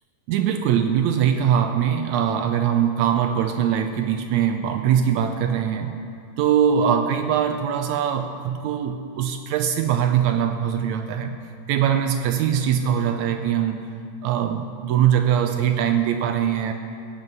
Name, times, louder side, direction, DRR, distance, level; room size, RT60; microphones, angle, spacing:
voice 1, 0.3-6.0 6.4-11.4 11.7-13.9 14.2-16.7, right 9 dB, 80° right, 7 dB, 1.7 m, -22 dB
17.0 x 7.2 x 5.5 m, 2.5 s
omnidirectional pair, 3.6 m